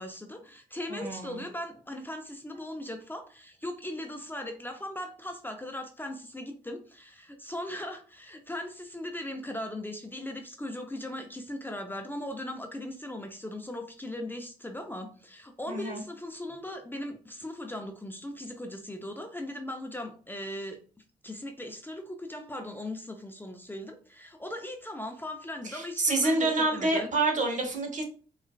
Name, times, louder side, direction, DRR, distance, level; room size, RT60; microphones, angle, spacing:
voice 1, 0.0-20.8 21.2-27.1, left 1 dB, 10° left, 4 dB, 0.6 m, -39 dB
voice 2, 0.9-1.4 15.7-16.0 25.6-28.0, right 2 dB, 50° right, 3 dB, 1.0 m, -28 dB
4.3 x 2.3 x 2.3 m, 0.40 s
supercardioid pair, 50°, 16 cm